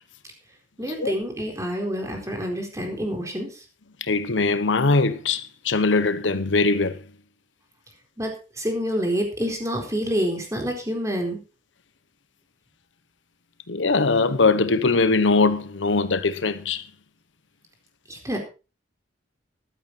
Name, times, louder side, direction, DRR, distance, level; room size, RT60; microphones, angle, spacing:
voice 1, 0.8-3.6 8.2-8.3 8.6-11.4 18.1-18.4, equal, 15° right, 4.2 m, -27 dB
voice 2, 4.0-7.0 13.7-16.8, left 3 dB, 85° left, 1.0 m, -21 dB
14.0 x 12.0 x 4.2 m
head